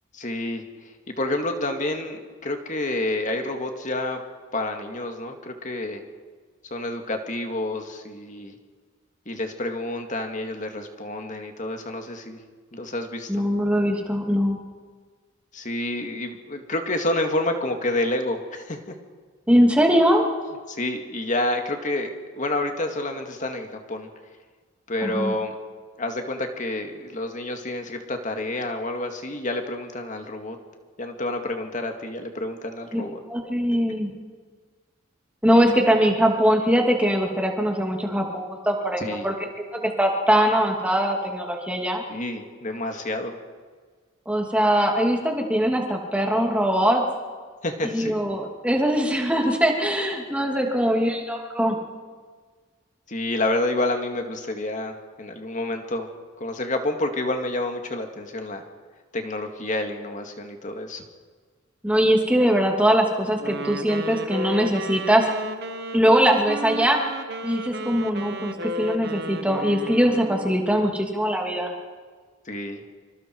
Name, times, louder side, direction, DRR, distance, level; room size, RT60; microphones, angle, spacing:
voice 1, 0.1-0.6 1.2-4.2 4.5-6.0 6.7-8.5 9.3-12.4 12.7-13.4 15.5-19.0 20.7-24.1 24.9-25.5 26.0-30.6 31.0-33.2 39.0-39.3 42.1-43.4 47.6-48.2 53.1-56.1 56.4-58.6 59.1-61.0 72.5-72.8, left 1 dB, 40° left, 4 dB, 2.2 m, -29 dB
voice 2, 13.3-14.6 19.5-20.3 25.0-25.3 32.9-33.0 33.3-34.1 35.4-39.3 39.8-42.0 44.3-47.0 47.8-51.8 61.8-65.3 65.9-67.0 67.4-71.7, equal, 5° right, 1 dB, 2.6 m, -21 dB
Wind instrument woodwind instrument, 63.4-70.6, right 1 dB, 55° right, 1.3 m, -33 dB
26.5 x 25.0 x 4.7 m, 1.5 s
head